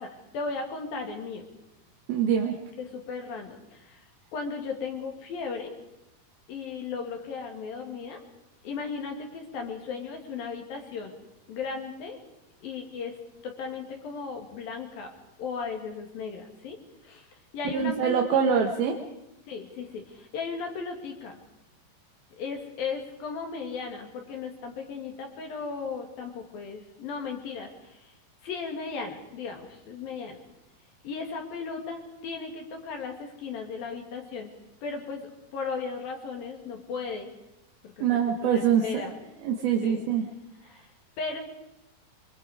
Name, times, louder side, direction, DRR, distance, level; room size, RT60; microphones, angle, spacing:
voice 1, 0.0-1.5 2.8-5.7 6.5-8.2 8.6-11.1 11.5-12.2 12.6-13.2 13.4-15.1 15.4-16.8 17.0-17.3 17.5-18.2 18.5-18.6 19.5-21.4 22.4-28.1 28.4-30.4 31.0-34.5 34.8-37.3 37.8-39.1 39.8-40.0 40.6-40.9 41.2-41.4, left 5 dB, 55° left, 3 dB, 3.5 m, -36 dB
voice 2, 2.1-2.5 17.7-19.0 38.0-39.0 39.4-40.2, right 7 dB, 65° right, 2 dB, 2.9 m, -24 dB
24.0 x 23.5 x 4.9 m, 0.91 s
omnidirectional pair, 5.4 m